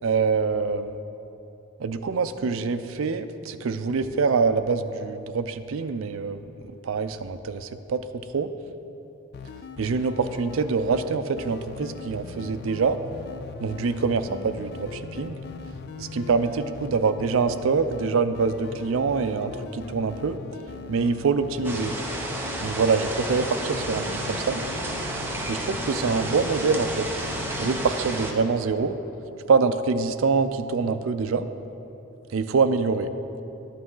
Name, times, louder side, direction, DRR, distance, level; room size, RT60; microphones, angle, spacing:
voice 1, 0.0-1.0 1.8-6.4 6.8-8.1 8.3-8.5 9.8-13.0 13.6-15.4 16.0-20.4 20.9-21.9 22.6-24.6 25.5-27.0 27.6-29.0 29.5-31.5 32.3-33.1, right 4 dB, 80° right, 10 dB, 0.4 m, -25 dB
sound 1, 9.3-28.0, left 5 dB, 50° left, 0.3 m, -40 dB
sound 2, 21.6-28.3, right 1 dB, 10° right, 0.8 m, -31 dB
11.5 x 8.5 x 3.8 m, 3.0 s
head